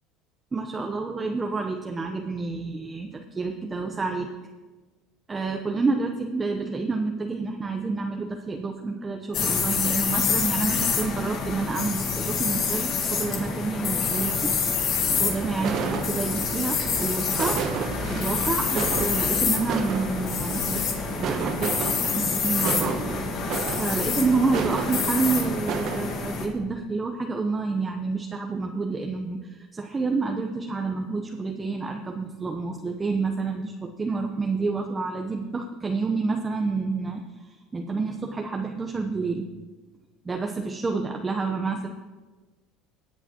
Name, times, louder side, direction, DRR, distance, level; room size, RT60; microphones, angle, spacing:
voice 1, 0.5-4.3 5.3-14.5 15.1-17.6 18.1-20.8 21.2-23.0 23.3-23.4 23.8-39.5 40.2-41.9, right 4 dB, 20° right, 3 dB, 0.9 m, -29 dB
sound 1, 9.3-26.5, left 5 dB, 55° left, 2.0 m, -27 dB
sound 2, 15.1-26.2, right 7 dB, 55° right, 0.9 m, -33 dB
20.0 x 7.9 x 3.0 m, 1.3 s
supercardioid pair, 100°, 0 cm